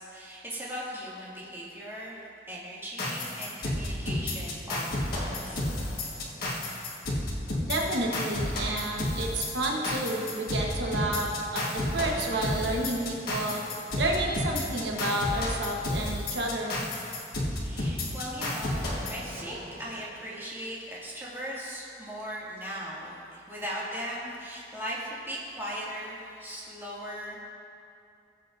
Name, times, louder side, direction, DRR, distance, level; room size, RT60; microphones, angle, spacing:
voice 1, 0.0-2.2 2.5-5.6 17.4-27.4, equal, 15° right, -7 dB, 2.2 m, -38 dB
sound 1, 3.0-19.9, left 1 dB, 60° left, 1.5 m, -32 dB
voice 2, 7.6-13.6 14.0-16.8, right 1 dB, 80° right, -1 dB, 1.2 m, -30 dB
18.0 x 7.6 x 2.6 m, 2.5 s
head